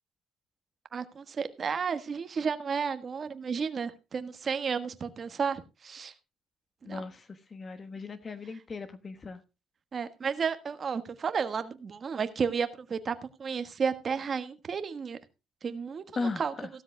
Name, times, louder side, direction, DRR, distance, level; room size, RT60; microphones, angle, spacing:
voice 1, 0.9-6.1 6.8-7.0 9.9-15.2 15.6-16.5, right 6 dB, 40° right, 1.5 m, -32 dB
voice 2, 6.8-9.4 16.1-16.7, left 3 dB, 35° left, 1.2 m, -37 dB
16.5 x 13.0 x 2.2 m
cardioid pair, 95°, 0 cm